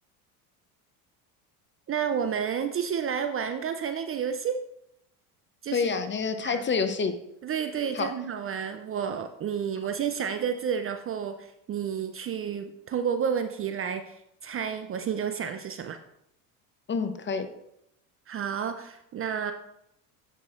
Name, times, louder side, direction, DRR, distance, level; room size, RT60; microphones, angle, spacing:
voice 1, 1.9-4.6 5.6-5.9 6.4-6.6 7.4-16.0 18.3-19.5, right 7 dB, 30° right, 8 dB, 0.5 m, -30 dB
voice 2, 5.7-7.1 7.9-8.1 16.9-17.5, left 5 dB, 25° left, 9 dB, 0.7 m, -27 dB
9.2 x 6.2 x 2.5 m, 0.79 s
hypercardioid pair, 80°, 45 cm